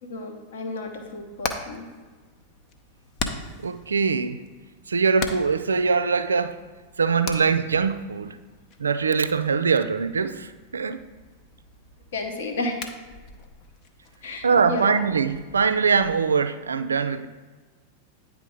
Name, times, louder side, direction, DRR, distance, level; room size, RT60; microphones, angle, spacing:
voice 1, 0.0-1.9 12.1-12.9 14.2-15.1, left 2 dB, 60° left, 1.0 m, -32 dB
Hammer, 0.9-16.2, left 4 dB, 40° left, 0.7 m, -40 dB
voice 2, 3.6-4.4 4.9-6.6 7.0-8.4 8.8-11.0 14.4-17.3, right 5 dB, 75° right, 0.3 m, -22 dB
9.3 x 3.4 x 4.9 m
figure-of-eight pair, 90°, 0 cm